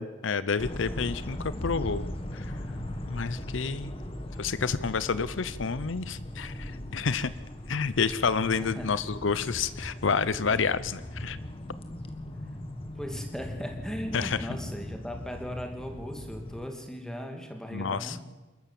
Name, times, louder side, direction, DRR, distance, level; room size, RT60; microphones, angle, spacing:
voice 1, 0.0-2.1 2.3-2.5 3.1-3.9 4.4-7.3 7.7-11.4 14.1-14.5 17.7-18.2, left 5 dB, 75° left, 16 dB, 0.7 m, -29 dB
sound 1, 0.6-16.7, left 1 dB, 30° left, 1.7 m, -39 dB
voice 2, 8.6-8.9 13.0-18.2, equal, 5° left, 3 dB, 2.7 m, -38 dB
28.5 x 13.0 x 7.6 m, 1.2 s
head